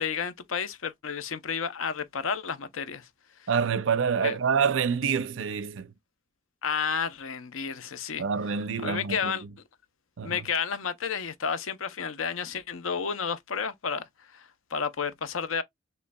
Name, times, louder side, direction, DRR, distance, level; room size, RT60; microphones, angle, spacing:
voice 1, 0.0-3.1 3.4-3.5 4.2-4.4 6.6-8.2 8.8-9.4 10.2-15.6, left 6 dB, 90° left, 0.6 m, -31 dB
voice 2, 3.5-5.9 8.2-9.3 10.2-10.4, right 6 dB, 70° right, 0.5 m, -27 dB
6.6 x 3.1 x 2.2 m
head